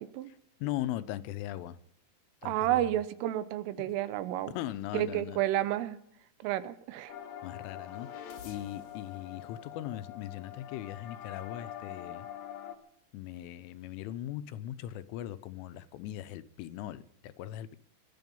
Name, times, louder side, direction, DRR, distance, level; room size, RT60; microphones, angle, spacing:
voice 1, 0.3-1.8 2.4-2.9 4.5-5.4 7.4-12.3 13.1-17.8, left 13 dB, 85° left, 3.3 m, -39 dB
voice 2, 2.4-4.6 4.9-6.0 6.4-7.1, right 13 dB, 85° right, 3.6 m, -31 dB
sound 1, 7.1-12.8, left 10 dB, 60° left, 2.0 m, -44 dB
21.0 x 11.5 x 5.4 m
omnidirectional pair, 5.6 m